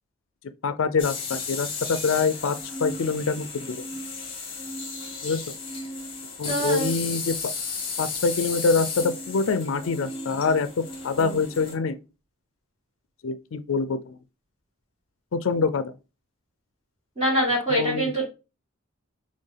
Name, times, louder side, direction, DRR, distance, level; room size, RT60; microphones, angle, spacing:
voice 1, 0.6-2.6 2.8-3.8 5.2-5.4 6.4-7.4 8.0-10.7 11.0-12.0 13.2-14.2 15.3-15.9 17.7-18.1, left 4 dB, 65° left, 0.4 m, -25 dB
sound 1, 1.0-11.7, left 4 dB, 25° left, 1.1 m, -34 dB
voice 2, 6.4-6.9 11.1-11.4 17.2-18.3, right 1 dB, 30° right, 2.2 m, -25 dB
4.4 x 3.1 x 3.3 m
head